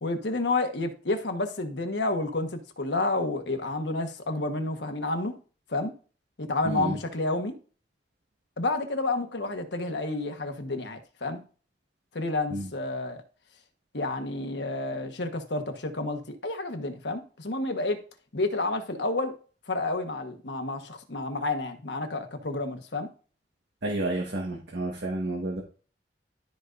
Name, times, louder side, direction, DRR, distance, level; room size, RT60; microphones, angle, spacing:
voice 1, 0.0-5.3 5.7-5.9 6.4-7.5 8.6-11.4 12.1-13.2 13.9-18.0 18.3-19.4 19.7-23.1, left 2 dB, 75° left, 1.3 m, -30 dB
voice 2, 6.6-7.0 12.5-12.7 23.8-25.6, right 2 dB, 70° right, 1.4 m, -30 dB
13.0 x 5.2 x 2.6 m
head